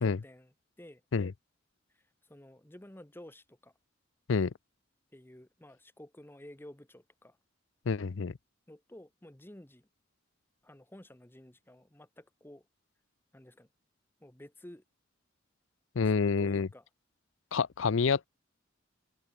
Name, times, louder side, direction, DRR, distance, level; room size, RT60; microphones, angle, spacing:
voice 1, 0.0-1.0 1.9-3.7 5.1-7.4 8.7-9.9 10.6-12.6 13.3-13.7 14.2-14.8 16.0-16.8, left 1 dB, 10° left, 1.1 m, -52 dB
voice 2, 7.9-8.4 16.0-16.7 17.5-18.3, left 5 dB, 70° left, 0.5 m, -28 dB
head